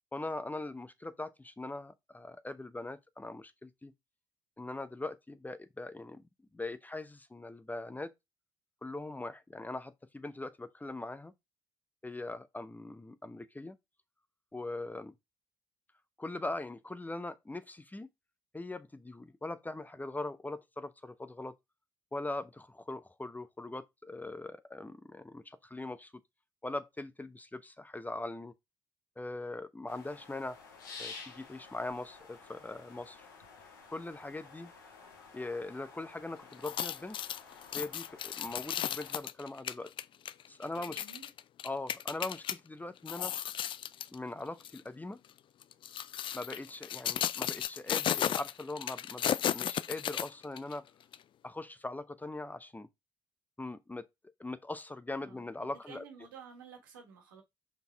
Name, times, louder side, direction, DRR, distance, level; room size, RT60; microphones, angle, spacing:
voice 1, 0.1-3.9 4.6-6.2 6.5-8.1 8.8-11.3 12.0-13.8 14.5-15.1 16.2-18.1 18.5-21.5 22.1-26.1 26.6-28.5 29.2-30.6 31.0-33.3 33.9-34.7 35.3-37.2 37.7-39.9 40.5-41.0 41.6-43.4 44.1-45.2 46.3-50.9 51.4-52.9 53.6-54.1 54.4-56.0, left 2 dB, 15° left, 0.9 m, -41 dB
sound 1, 29.9-39.2, left 4 dB, 85° left, 1.5 m, -52 dB
sound 2, 36.5-42.6 43.0-44.1 44.6-44.8 45.6-50.7 51.1-51.2, left 10 dB, 50° left, 0.4 m, -35 dB
voice 2, 40.7-41.3 55.2-55.5 55.9-57.4, right 6 dB, 85° right, 1.6 m, -52 dB
5.3 x 4.5 x 4.6 m
hypercardioid pair, 50°, 11 cm